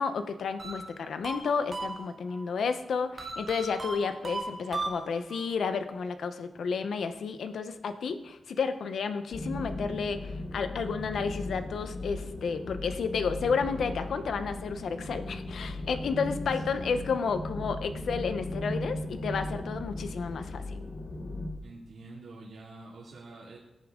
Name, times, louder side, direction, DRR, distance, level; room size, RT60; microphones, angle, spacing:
voice 1, 0.0-20.6, left 5 dB, 90° left, 9 dB, 0.9 m, -31 dB
sound 1, 0.6-2.4 3.2-5.4, right 2 dB, 35° right, 2.3 m, -37 dB
sound 2, 9.3-21.5, left 1 dB, 65° left, 2.1 m, -37 dB
voice 2, 21.6-23.6, right 3 dB, 85° right, -5 dB, 2.5 m, -47 dB
17.0 x 9.6 x 3.8 m, 0.95 s
wide cardioid pair, 135°, 0 cm